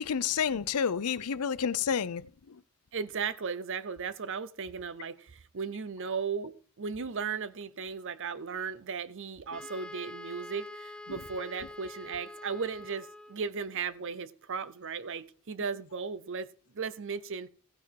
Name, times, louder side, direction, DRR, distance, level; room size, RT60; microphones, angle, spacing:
voice 1, 0.0-2.2 2.5-2.6, left 7 dB, 85° left, 0.6 m, -29 dB
voice 2, 2.9-16.5 16.7-17.5, right 5 dB, 60° right, 0.7 m, -36 dB
Wind instrument woodwind instrument, 9.5-13.5, left 2 dB, 5° left, 0.5 m, -46 dB
15.5 x 5.8 x 4.6 m
head